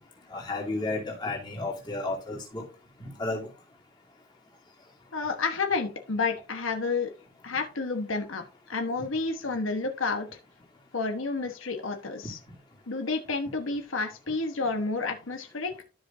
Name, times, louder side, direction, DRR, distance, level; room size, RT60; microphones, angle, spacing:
voice 1, 0.3-2.6 3.0-3.5 12.2-12.3, left 2 dB, 20° left, -2 dB, 2.6 m, -32 dB
voice 2, 5.1-7.1 7.4-10.3 10.9-12.4 12.9-15.8, left 4 dB, 85° left, 5 dB, 1.2 m, -30 dB
13.0 x 5.1 x 2.6 m, 0.32 s
head